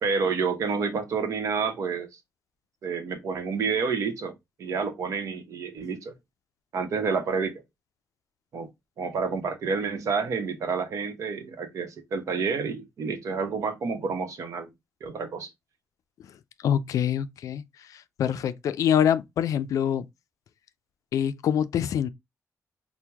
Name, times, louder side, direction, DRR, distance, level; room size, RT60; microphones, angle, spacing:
voice 1, 0.0-2.1 2.8-4.3 4.6-6.1 6.7-7.6 8.5-8.7 9.0-14.7 15.0-15.5, right 5 dB, 70° right, 0.9 m, -29 dB
voice 2, 16.6-17.6 17.9-20.1 21.1-22.1, left 9 dB, 80° left, 0.4 m, -25 dB
4.5 x 2.1 x 3.3 m
cardioid pair, 125°, 6 cm